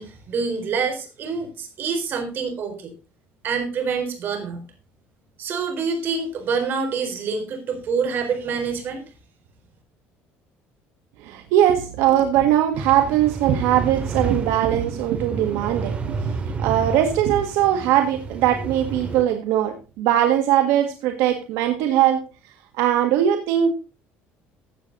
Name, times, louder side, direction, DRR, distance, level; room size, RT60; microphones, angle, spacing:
voice 1, 0.0-2.9 3.4-4.7 5.4-9.0, right 5 dB, 45° right, 5 dB, 4.1 m, -26 dB
voice 2, 11.2-22.2 22.8-23.7, right 11 dB, 85° right, 6 dB, 1.6 m, -20 dB
sound 1, 12.7-19.2, right 4 dB, 25° right, 2.1 m, -30 dB
14.5 x 8.4 x 3.9 m, 0.32 s
cardioid pair, 135°, 5 cm